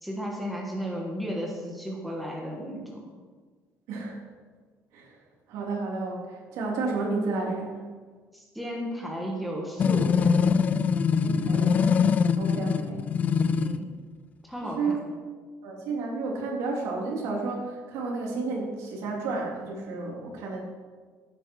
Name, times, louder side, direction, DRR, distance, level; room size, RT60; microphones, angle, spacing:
voice 1, 0.0-3.0 8.3-10.2 13.6-13.9 14.4-15.0, equal, ahead, -2 dB, 1.6 m, -34 dB
voice 2, 5.5-7.7 11.2-12.1 12.4-13.1 14.6-15.0 15.6-20.6, right 3 dB, 75° right, -2 dB, 3.8 m, -31 dB
sound 1, 9.8-13.8, left 6 dB, 25° left, 0.4 m, -23 dB
15.5 x 9.0 x 4.9 m, 1.5 s
cardioid pair, 175°, 6 cm